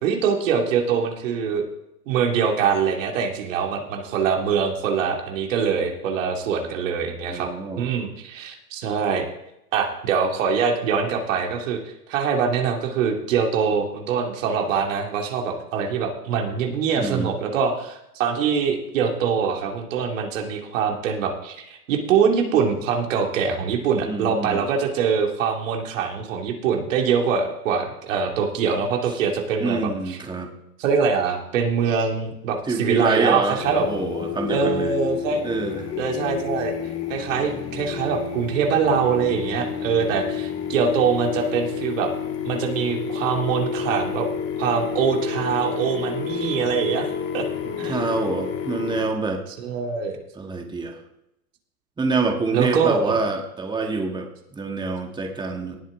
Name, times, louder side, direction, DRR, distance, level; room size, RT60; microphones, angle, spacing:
voice 1, 0.0-1.7 2.1-7.5 7.8-9.3 9.7-30.2 30.8-33.9 34.5-35.4 36.0-36.7 37.1-42.1 42.4-44.3 44.6-47.5 47.8-48.1 49.6-50.2 52.5-53.1, right 6 dB, 55° right, 2 dB, 2.5 m, -23 dB
voice 2, 7.3-7.9 17.0-17.3 24.0-24.7 29.1-29.2 29.6-30.5 32.6-35.0 35.4-35.9 47.9-49.4 50.4-51.0 52.0-55.8, right 3 dB, 10° right, 3 dB, 1.8 m, -26 dB
sound 1, 33.6-49.1, left 7 dB, 30° left, 2.4 m, -30 dB
18.5 x 8.1 x 3.8 m, 0.83 s
hypercardioid pair, 105°, 45 cm